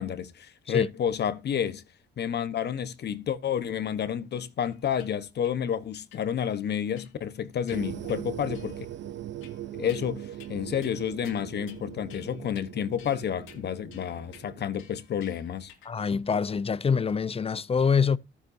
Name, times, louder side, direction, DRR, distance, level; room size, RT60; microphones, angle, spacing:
voice 1, 0.0-1.8 2.2-8.9 9.7-15.7, left 8 dB, 55° left, 1.1 m, -30 dB
sound 1, 4.6-5.1 5.4-5.6 6.1-6.2 7.0-7.3 7.7-8.2 8.5-9.0 9.4-10.1 10.4-10.6 10.8-11.0 11.2-11.8 12.1-12.7 13.0-16.0, left 8 dB, 80° left, 2.6 m, -54 dB
sound 2, 7.7-14.8, right 12 dB, 65° right, 0.8 m, -40 dB
voice 2, 15.9-18.2, left 6 dB, 30° left, 0.7 m, -25 dB
13.5 x 9.9 x 2.7 m
cardioid pair, 90°, 20 cm